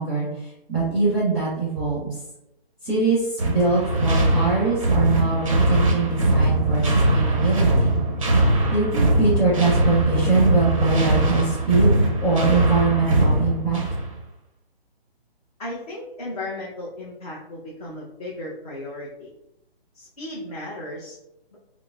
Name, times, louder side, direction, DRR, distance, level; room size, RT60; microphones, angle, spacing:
voice 1, 0.0-2.1 2.8-7.9 8.7-13.8, right 4 dB, ahead, -13 dB, 0.9 m, -23 dB
sound 1, 3.4-14.1, right 1 dB, 35° right, 0.5 m, -21 dB
voice 2, 15.6-19.3 19.9-21.2, left 1 dB, 40° left, -6 dB, 0.7 m, -35 dB
6.0 x 2.0 x 2.3 m, 0.87 s
hypercardioid pair, 165°, 31 cm